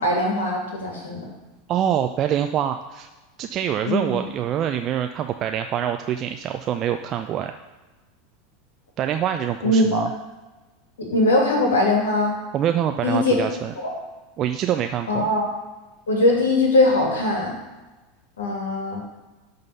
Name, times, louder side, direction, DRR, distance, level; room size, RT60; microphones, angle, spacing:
voice 1, 0.0-1.2 3.9-4.2 9.6-9.9 11.0-12.3 13.0-13.4 13.8-13.9 15.1-15.5 16.1-17.6 18.4-19.0, left 2 dB, 70° left, -1 dB, 2.5 m, -21 dB
voice 2, 1.7-3.1 3.4-7.6 9.0-10.1 12.5-13.7 14.4-15.3, right 10 dB, 40° right, 6 dB, 0.5 m, -25 dB
11.5 x 4.1 x 5.6 m, 1.2 s
figure-of-eight pair, 80°, 0 cm